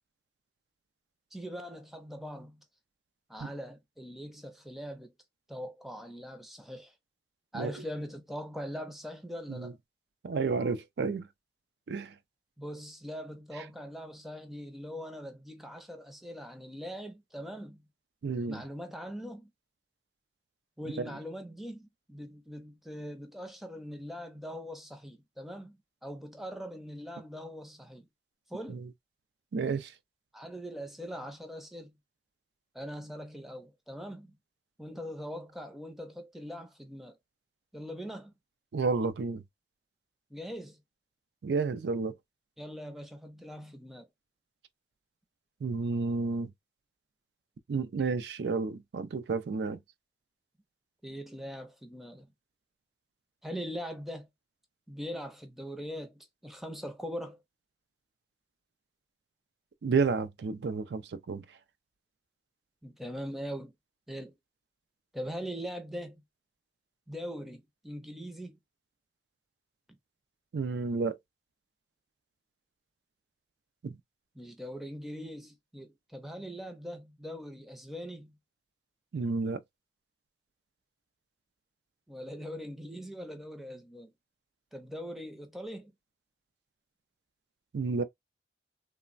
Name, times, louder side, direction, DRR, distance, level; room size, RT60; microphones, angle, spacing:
voice 1, 1.3-2.6 3.3-5.1 5.5-6.9 7.5-9.8 12.6-17.8 18.5-19.5 20.8-28.1 28.5-28.8 30.3-32.0 32.7-34.4 34.8-37.2 37.7-38.3 40.3-40.8 42.6-44.1 51.0-52.3 53.4-54.3 54.9-57.4 62.8-63.7 64.1-64.4 65.1-66.2 67.1-68.6 74.3-78.4 82.1-84.1 84.7-85.9, equal, ahead, 0.4 m, -41 dB
voice 2, 10.2-11.3 11.9-12.2 18.2-18.6 21.0-21.1 28.7-28.9 29.5-29.9 38.7-39.4 41.4-42.1 45.6-46.5 47.7-49.8 59.8-61.4 70.5-71.2 73.8-74.0 79.1-79.6 87.7-88.0, right 4 dB, 70° right, 0.4 m, -31 dB
3.1 x 2.1 x 2.4 m
head